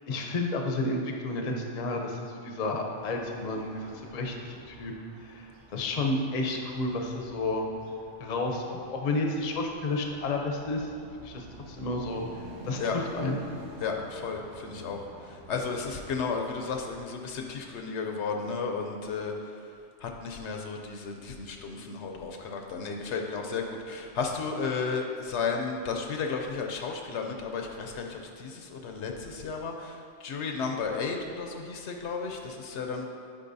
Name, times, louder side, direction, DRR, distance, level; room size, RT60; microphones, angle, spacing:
voice 1, 0.1-4.9 5.2-7.7 8.2-10.9 11.2-12.2 12.6-13.4, left 2 dB, 45° left, 2 dB, 0.6 m, -31 dB
sound 1, 2.9-17.0, right 1 dB, 90° right, 1.2 m, -49 dB
voice 2, 13.8-15.0 15.3-19.3 20.0-33.0, left 5 dB, 75° left, 3 dB, 0.9 m, -33 dB
8.4 x 5.2 x 2.6 m, 2.4 s
omnidirectional pair, 1.2 m